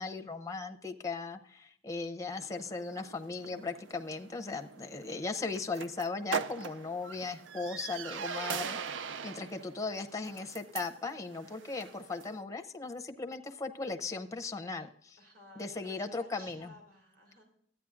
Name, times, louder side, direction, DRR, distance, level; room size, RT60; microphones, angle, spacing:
voice 1, 0.0-15.2 15.6-16.7, left 3 dB, 15° left, 7 dB, 0.6 m, -38 dB
sound 1, 2.3-12.4, right 6 dB, 80° right, 0.5 m, -42 dB
voice 2, 15.2-17.4, left 1 dB, 50° right, 1 dB, 2.9 m, -55 dB
13.5 x 9.1 x 2.4 m, 0.64 s
head